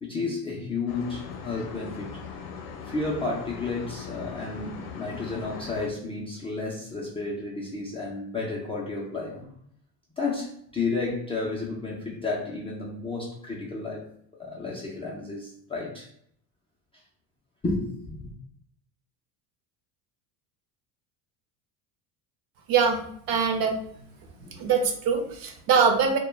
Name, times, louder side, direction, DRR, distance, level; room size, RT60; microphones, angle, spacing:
voice 1, 0.0-2.2 2.9-9.5 10.2-14.1 14.4-16.1 17.6-18.2 24.4-24.7, left 3 dB, 15° left, -4 dB, 0.3 m, -32 dB
sound 1, 0.9-5.9, left 6 dB, 60° left, 0.6 m, -40 dB
voice 2, 22.7-23.0 23.3-23.7 24.6-26.2, right 6 dB, 55° right, 4 dB, 0.6 m, -22 dB
2.2 x 2.1 x 3.1 m, 0.65 s
supercardioid pair, 105°, 45 cm